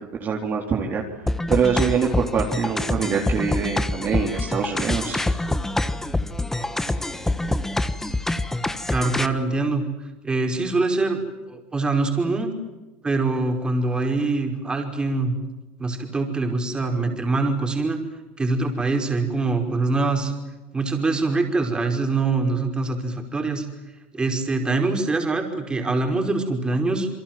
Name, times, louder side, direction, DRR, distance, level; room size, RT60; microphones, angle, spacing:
voice 1, 0.2-1.0 1.5-5.2, right 6 dB, 35° right, 0 dB, 3.7 m, -24 dB
sound 1, 1.3-9.3, left 2 dB, 5° left, 1.4 m, -26 dB
voice 2, 8.9-9.8 10.2-12.5 13.0-15.3 15.8-18.0 18.4-20.3 20.7-23.7 24.1-27.1, right 3 dB, 15° right, 4 dB, 5.3 m, -24 dB
28.5 x 23.5 x 7.6 m, 1.1 s
supercardioid pair, 125°, 6 cm